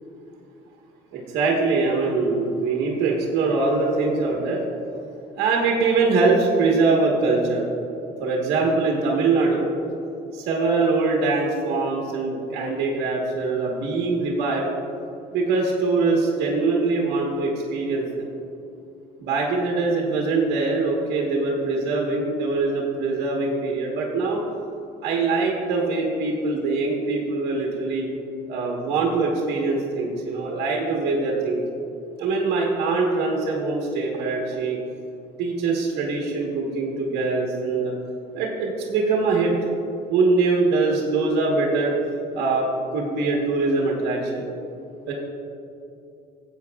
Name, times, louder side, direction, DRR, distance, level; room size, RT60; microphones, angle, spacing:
voice 1, 1.1-4.6 5.3-7.6 8.2-9.7 10.3-14.7 15.3-18.3 19.2-24.4 25.0-28.1 28.5-31.6 32.2-34.8 35.4-37.9 38.3-39.6 40.1-41.9 42.3-42.7 42.9-44.5 45.1-45.2, right 3 dB, 75° right, -2 dB, 1.4 m, -23 dB
15.0 x 8.2 x 2.4 m, 2.7 s
cardioid pair, 110°, 17 cm